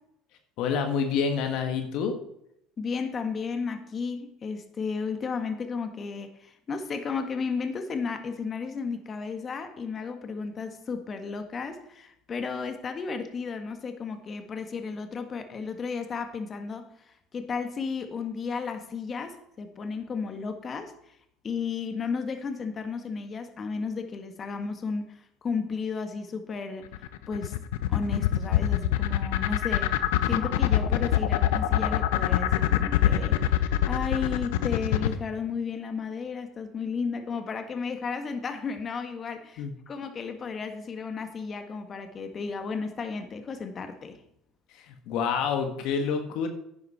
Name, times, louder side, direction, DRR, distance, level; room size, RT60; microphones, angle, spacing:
voice 1, 0.6-2.1 39.6-39.7 44.7-46.5, left 6 dB, 65° left, 6 dB, 1.5 m, -28 dB
voice 2, 2.8-21.2 21.4-26.9 27.3-27.5 27.9-29.9 30.2-44.2, left 5 dB, 35° left, 7 dB, 1.7 m, -33 dB
sound 1, 26.9-35.2, left 13 dB, 85° left, 0.8 m, -23 dB
10.5 x 9.9 x 4.3 m, 0.76 s
supercardioid pair, 85°, 0 cm